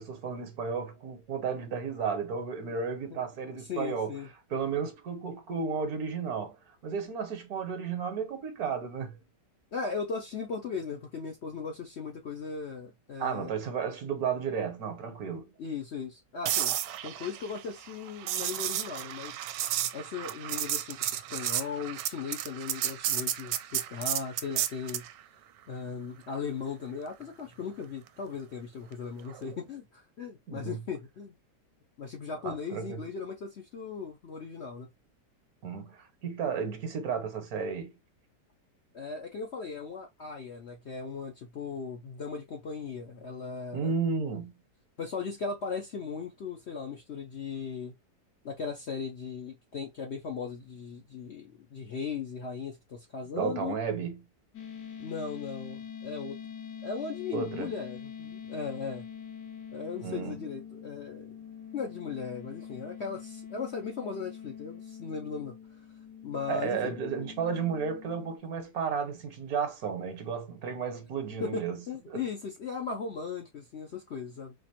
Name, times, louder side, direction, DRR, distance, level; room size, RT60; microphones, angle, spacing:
voice 1, 0.0-4.1 4.5-6.6 6.8-9.2 13.2-15.5 30.5-30.8 32.4-33.0 35.6-37.9 43.7-44.5 53.3-54.2 57.3-57.7 60.0-60.4 66.5-71.8 72.1-72.2, right 6 dB, 65° right, 1.3 m, -33 dB
voice 2, 3.7-4.3 9.7-13.5 15.6-16.8 17.0-19.5 19.9-25.1 25.7-31.3 32.0-34.9 38.9-43.9 45.0-47.9 48.4-53.7 55.0-56.4 56.8-59.1 59.7-61.3 61.7-65.5 66.2-66.9 71.4-74.5, left 5 dB, 55° left, 0.8 m, -37 dB
sound 1, 16.5-25.1 29.3-29.5, right 11 dB, 80° right, 1.2 m, -32 dB
sound 2, 54.5-68.4, left 8 dB, 75° left, 1.5 m, -44 dB
4.3 x 2.5 x 2.9 m
omnidirectional pair, 1.9 m